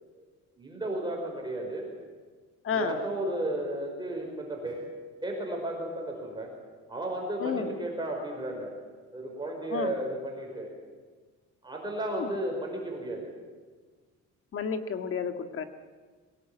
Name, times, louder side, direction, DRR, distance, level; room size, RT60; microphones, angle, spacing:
voice 1, 0.6-1.9 2.7-4.9 5.2-6.5 6.9-8.7 9.1-10.7 11.6-13.3, right 1 dB, 15° right, 0 dB, 5.1 m, -34 dB
voice 2, 2.6-2.9 7.4-7.7 9.7-9.9 12.1-12.3 14.5-15.7, left 6 dB, 45° left, 8 dB, 1.7 m, -31 dB
23.0 x 19.5 x 8.7 m, 1.4 s
cardioid pair, 145°, 30 cm